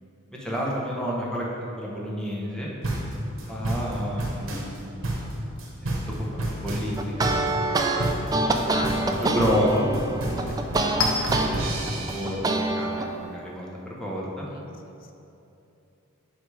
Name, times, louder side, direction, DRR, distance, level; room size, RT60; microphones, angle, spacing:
voice 1, 0.3-1.5 1.8-2.7 3.5-4.9 5.8-8.1 8.7-8.8 9.0-10.6 11.3-11.5 11.9-14.5, equal, 5° left, -4 dB, 0.9 m, -30 dB
sound 1, 2.8-12.3, right 1 dB, 75° right, 1.1 m, -30 dB
sound 2, 7.0-11.5 11.9-13.1, right 2 dB, 20° right, 0.3 m, -25 dB
Chink clink, 8.1-13.6, left 3 dB, 85° left, 0.7 m, -36 dB
voice 2, 8.7-9.5 10.2-11.0 14.5-15.1, left 5 dB, 45° left, 4 dB, 0.5 m, -40 dB
5.1 x 4.8 x 4.8 m, 2.8 s
head